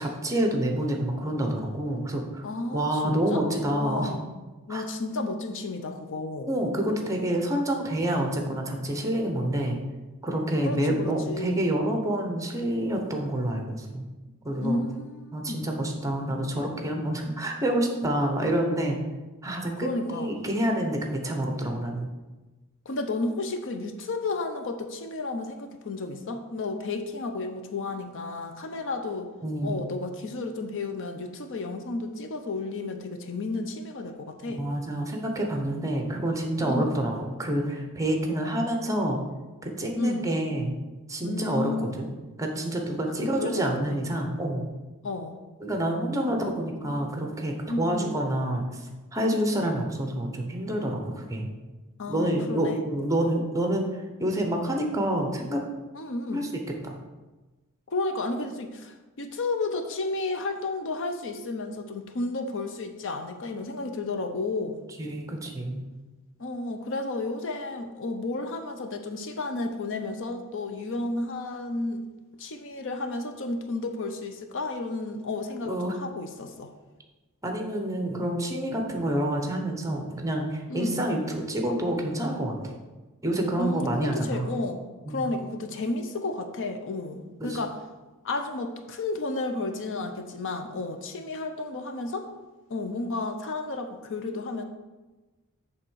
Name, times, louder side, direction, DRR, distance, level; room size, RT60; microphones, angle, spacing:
voice 1, 0.0-2.5 2.7-4.1 4.7-4.8 6.5-9.8 10.2-14.0 14.4-14.8 15.3-19.0 19.4-22.1 29.4-29.8 34.6-39.2 39.6-40.7 41.1-42.1 42.4-44.7 45.6-48.8 49.1-51.5 52.1-53.8 54.2-55.6 56.3-56.5 56.8-56.9 65.0-65.8 75.6-76.0 77.4-82.7 83.2-84.6 85.1-85.3 87.5-87.6, right 1 dB, 15° right, 2 dB, 1.0 m, -28 dB
voice 2, 2.4-4.4 4.7-6.5 10.6-11.6 14.5-15.7 19.8-20.3 22.9-29.3 29.6-34.6 36.7-37.0 39.9-40.3 41.2-41.9 43.2-44.0 45.0-45.4 46.4-46.5 46.8-46.9 47.7-48.1 52.0-52.8 55.9-56.5 57.9-64.8 66.4-72.0 72.4-76.7 80.7-81.1 83.6-87.8 88.2-92.3 92.7-94.6, left 2 dB, 60° left, 6 dB, 0.7 m, -32 dB
7.5 x 3.6 x 6.3 m, 1.2 s
head